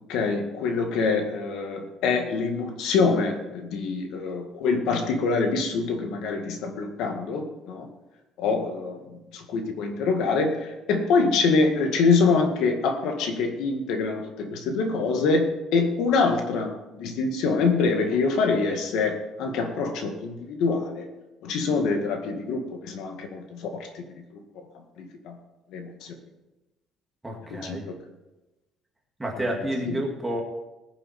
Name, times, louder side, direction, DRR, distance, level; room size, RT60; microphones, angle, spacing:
voice 1, 0.1-7.9 8.4-21.1 21.4-24.4 25.0-25.4 25.7-26.1 27.5-27.8 29.4-29.5 29.9-30.0, left 4 dB, 70° left, 4 dB, 2.0 m, -25 dB
voice 2, 27.2-27.8 29.2-30.4, right 1 dB, 10° right, -1 dB, 2.0 m, -29 dB
19.5 x 7.4 x 4.4 m, 1.0 s
cardioid pair, 170°, 0 cm